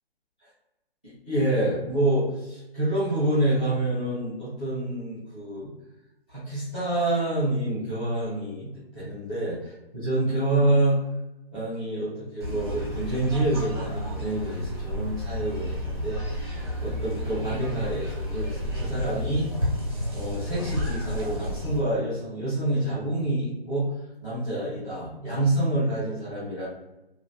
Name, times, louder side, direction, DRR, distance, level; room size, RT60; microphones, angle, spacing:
voice 1, 1.0-5.7 6.3-8.7 8.9-11.0 11.5-19.5 20.1-23.9 24.2-26.6, right 1 dB, 10° left, -14 dB, 0.8 m, -27 dB
sound 1, 12.4-21.8, equal, 25° right, 0.9 m, -31 dB
2.8 x 2.2 x 3.1 m, 0.93 s
hypercardioid pair, 175°, 31 cm